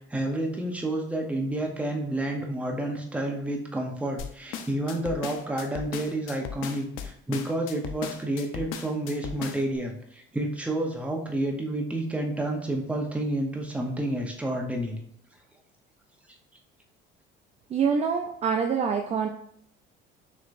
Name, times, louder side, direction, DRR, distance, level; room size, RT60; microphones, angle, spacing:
voice 1, 0.1-15.0, right 1 dB, 5° right, 1 dB, 0.7 m, -30 dB
sound 1, 4.2-9.8, left 7 dB, 85° left, 0.6 m, -37 dB
voice 2, 17.7-19.3, right 6 dB, 30° right, 4 dB, 0.3 m, -25 dB
6.3 x 3.0 x 2.5 m, 0.66 s
cardioid pair, 145°, 21 cm